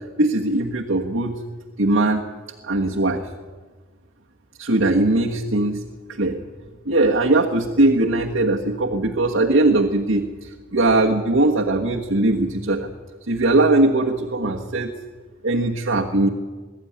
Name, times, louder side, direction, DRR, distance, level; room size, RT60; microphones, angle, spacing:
voice 1, 0.2-1.4 1.8-2.2 2.6-3.3 4.6-5.9 6.2-6.4 6.8-12.9 13.3-14.9 15.4-16.3, right 2 dB, 70° right, -1 dB, 1.4 m, -20 dB
22.0 x 13.0 x 9.7 m, 1.5 s
head